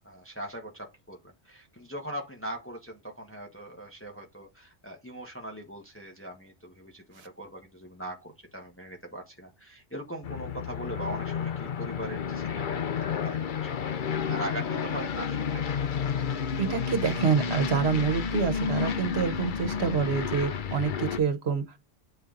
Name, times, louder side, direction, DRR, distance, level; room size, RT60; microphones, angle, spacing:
voice 1, 0.0-15.6, right 1 dB, 10° left, 1.4 m, -41 dB
Aircraft, 10.2-21.2, left 6 dB, 55° left, 0.9 m, -31 dB
voice 2, 16.6-21.8, right 6 dB, 75° right, 1.4 m, -27 dB
8.9 x 4.5 x 3.9 m
omnidirectional pair, 1.1 m